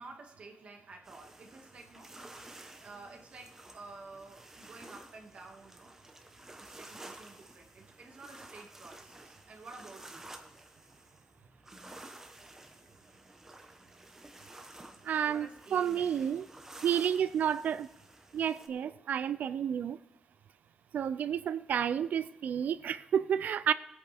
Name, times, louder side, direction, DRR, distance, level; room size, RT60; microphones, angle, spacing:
voice 1, 0.0-2.1 2.8-6.0 6.6-10.3 15.2-16.5, right 3 dB, 50° right, 2.0 m, -51 dB
sound 1, 1.0-18.7, right 2 dB, 15° right, 1.1 m, -52 dB
voice 2, 15.0-16.5 16.8-17.9 18.3-20.0 20.9-23.7, right 8 dB, 75° right, 0.4 m, -30 dB
19.5 x 8.7 x 3.5 m
wide cardioid pair, 155°, 3 cm